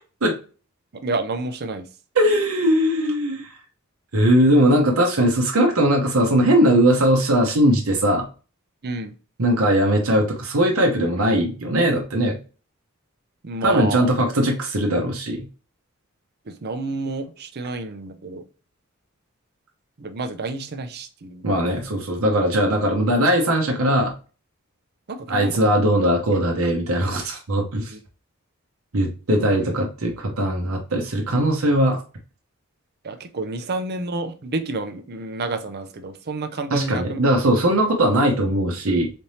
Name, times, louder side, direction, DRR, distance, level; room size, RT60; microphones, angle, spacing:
voice 1, 0.9-1.9 8.8-9.1 13.4-14.1 16.5-18.4 20.0-21.4 25.1-25.6 27.9-28.0 33.0-37.2, right 3 dB, 50° right, 8 dB, 0.6 m, -29 dB
voice 2, 2.1-3.5 4.1-8.2 9.4-12.4 13.6-15.5 21.4-24.1 25.3-27.9 28.9-32.0 36.7-39.1, right 1 dB, 80° right, 1 dB, 0.9 m, -20 dB
4.2 x 3.4 x 2.7 m, 0.35 s
head